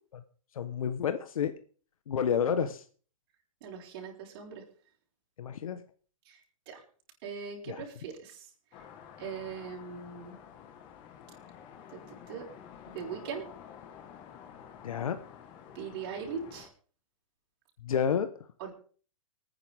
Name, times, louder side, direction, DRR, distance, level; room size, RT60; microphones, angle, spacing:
voice 1, 0.5-1.5 2.1-2.8 5.4-5.8 7.7-7.8 14.8-15.2 17.8-18.3, left 7 dB, 90° left, 10 dB, 1.2 m, -29 dB
voice 2, 3.6-4.6 6.3-6.4 6.7-6.8 7.2-8.5 9.2-10.4 11.9-12.5 12.9-13.5 15.8-16.7 18.6-18.7, right 6 dB, 45° right, -1 dB, 5.2 m, -40 dB
sound 1, 8.7-16.7, left 8 dB, 30° left, 1.6 m, -50 dB
25.0 x 9.6 x 3.6 m, 0.41 s
hypercardioid pair, 160°, 17 cm